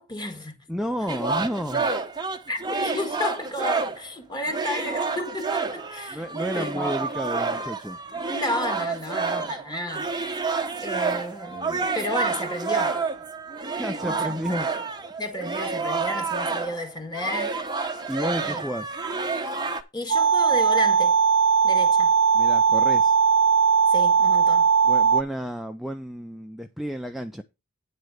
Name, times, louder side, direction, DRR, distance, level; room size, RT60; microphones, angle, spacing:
voice 1, 0.0-0.6 2.5-6.3 6.5-7.1 8.3-10.5 10.8-13.0 14.0-14.6 15.2-17.6 18.4-18.7 19.9-21.2 21.6-22.1 23.9-24.7, left 1 dB, 20° left, 1.8 m, -32 dB
voice 2, 0.7-1.9 6.1-8.0 13.7-14.7 15.0-15.1 18.1-19.0 22.3-23.2 24.8-27.4, equal, ahead, 0.5 m, -31 dB
sound 1, 1.1-4.1 4.4-16.8 17.1-19.8, right 4 dB, 20° right, 0.9 m, -29 dB
sound 2, 20.1-25.2, right 6 dB, 55° right, 0.5 m, -19 dB
9.5 x 4.3 x 6.4 m
head